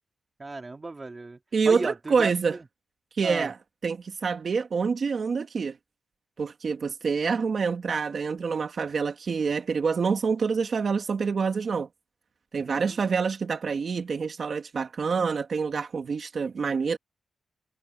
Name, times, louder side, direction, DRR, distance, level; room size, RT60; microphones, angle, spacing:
voice 1, 0.4-1.4 1.6-2.7 3.2-3.5 12.6-13.0, right 3 dB, 25° right, 2.3 m, -35 dB
voice 2, 1.5-2.6 3.2-3.5 3.8-5.8 6.4-11.9 12.5-17.0, right 5 dB, 45° right, 1.8 m, -27 dB
wide cardioid pair, 130°, 0 cm